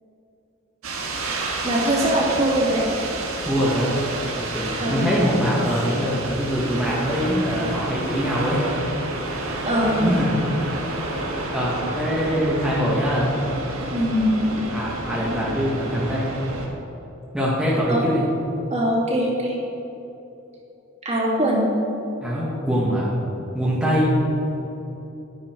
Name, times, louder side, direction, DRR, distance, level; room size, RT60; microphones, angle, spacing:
sound 1, 0.8-16.7, right 2 dB, 75° right, 1.8 m, -30 dB
voice 1, 1.6-2.9 4.8-5.0 9.6-10.1 13.9-14.4 17.9-18.1 18.7-19.6 21.0-21.6, equal, 35° right, -5 dB, 2.7 m, -21 dB
voice 2, 3.4-3.9 4.3-8.6 9.8-10.4 11.5-13.3 14.7-16.2 17.3-18.2 22.2-23.1 23.5-24.2, equal, 5° right, -8 dB, 1.8 m, -23 dB
10.5 x 10.5 x 4.6 m, 3.0 s
head